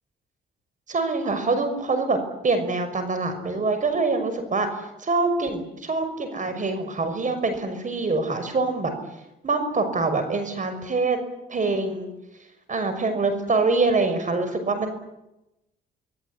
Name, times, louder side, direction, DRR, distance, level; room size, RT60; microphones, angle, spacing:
voice 1, 0.9-4.7 5.0-8.9 9.4-11.2 11.5-12.1 12.7-14.9, right 3 dB, 40° right, 9 dB, 6.0 m, -25 dB
26.5 x 20.5 x 10.0 m, 0.92 s
cardioid pair, 90°, 20 cm